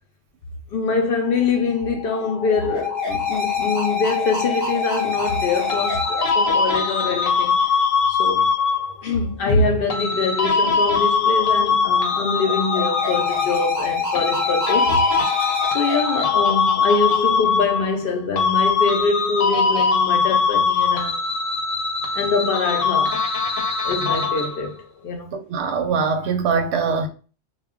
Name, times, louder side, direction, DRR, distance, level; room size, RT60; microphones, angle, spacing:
voice 1, 0.7-7.6 8.1-8.5 9.0-15.1 15.7-21.2 22.1-23.2 23.8-25.4, left 4 dB, 60° left, 0.6 m, -24 dB
sound 1, 1.3-7.7 11.3-17.7, left 6 dB, 20° left, 0.6 m, -27 dB
sound 2, 5.7-9.1 9.9-13.7 14.1-18.1 18.4-24.7, left 5 dB, 90° left, 1.1 m, -21 dB
voice 2, 25.3-27.1, right 5 dB, 65° right, 0.8 m, -22 dB
2.2 x 2.1 x 3.5 m
omnidirectional pair, 1.3 m